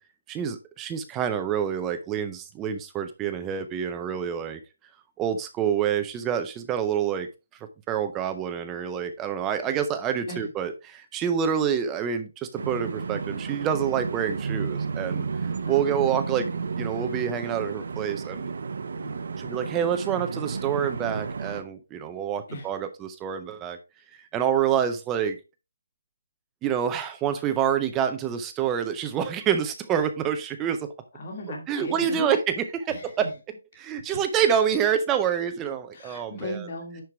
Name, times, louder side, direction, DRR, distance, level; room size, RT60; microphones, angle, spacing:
voice 1, 0.3-4.6 5.2-7.3 7.9-16.5 16.8-18.5 19.4-23.8 24.2-25.4 26.6-30.9 31.7-33.3 33.8-36.7, right 8 dB, 10° right, 8 dB, 0.5 m, -27 dB
sound 1, 12.6-21.6, right 5 dB, 60° right, 0.8 m, -32 dB
voice 2, 15.6-16.5 18.9-19.2 22.5-22.7 31.1-32.4 32.9-33.3 35.9-37.0, left 2 dB, 35° left, 0 dB, 2.5 m, -37 dB
10.5 x 4.6 x 3.4 m, 0.27 s
hypercardioid pair, 175°, 0 cm